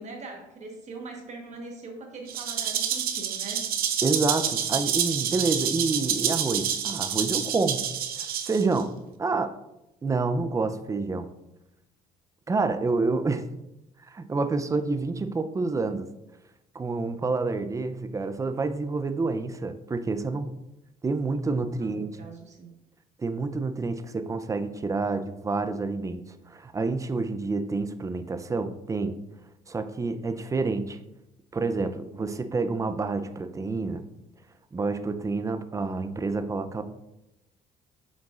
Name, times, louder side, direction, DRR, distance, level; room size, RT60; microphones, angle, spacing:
voice 1, 0.0-3.7 21.3-21.4 21.8-22.8, right 3 dB, 45° right, 1 dB, 1.2 m, -42 dB
Rattle (instrument), 2.3-8.8, right 8 dB, 65° right, 0.7 m, -28 dB
voice 2, 4.0-7.9 8.2-8.9 9.2-9.5 10.0-11.3 12.5-13.5 14.1-16.1 16.7-20.6 21.0-22.1 23.2-29.2 29.7-31.0 31.5-34.0 34.7-36.8, right 3 dB, 20° right, 10 dB, 0.5 m, -28 dB
7.2 x 6.3 x 2.4 m, 0.91 s
cardioid pair, 110°, 17 cm